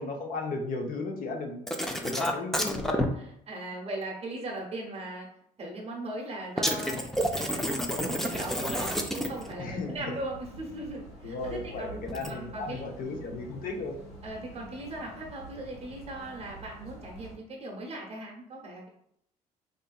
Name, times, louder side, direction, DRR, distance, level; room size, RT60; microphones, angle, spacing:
voice 1, 0.0-1.7 2.0-3.0 9.6-10.0 11.2-14.0, left 3 dB, 50° left, 2 dB, 0.7 m, -35 dB
sound 1, 1.7-3.1 6.6-9.5 12.1-12.3, equal, ahead, 0.4 m, -29 dB
voice 2, 3.5-5.3 5.6-7.0 7.3-12.0 12.3-12.8 14.2-18.9, right 1 dB, 35° right, -1 dB, 0.8 m, -38 dB
sound 2, 7.4-17.3, right 2 dB, 85° left, 1.3 m, -48 dB
2.7 x 2.5 x 2.3 m, 0.73 s
hypercardioid pair, 60°, 19 cm